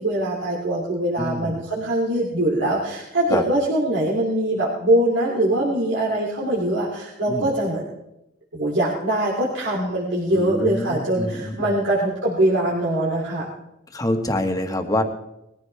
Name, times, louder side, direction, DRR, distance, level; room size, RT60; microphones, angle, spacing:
voice 1, 0.0-7.9 8.5-13.5, right 1 dB, 70° right, -5 dB, 3.1 m, -22 dB
voice 2, 1.2-1.7 3.3-3.4 7.3-7.5 10.3-11.8 13.9-15.0, left 1 dB, 20° left, 5 dB, 1.5 m, -26 dB
20.5 x 14.5 x 3.5 m, 0.88 s
head